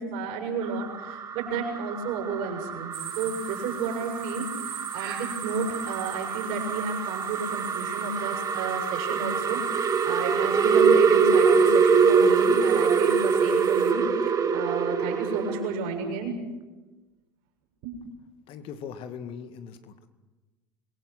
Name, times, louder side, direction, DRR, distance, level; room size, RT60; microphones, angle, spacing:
voice 1, 0.0-16.3 17.8-18.0, right 5 dB, 55° right, 2 dB, 7.3 m, -32 dB
sound 1, 0.6-15.8, right 5 dB, 30° right, 2.2 m, -24 dB
sound 2, 2.9-13.9, right 9 dB, 75° right, 6.4 m, -43 dB
voice 2, 18.5-20.1, left 7 dB, 50° left, 9 dB, 2.1 m, -40 dB
26.5 x 23.0 x 6.3 m, 1.2 s
figure-of-eight pair, 70°, 12 cm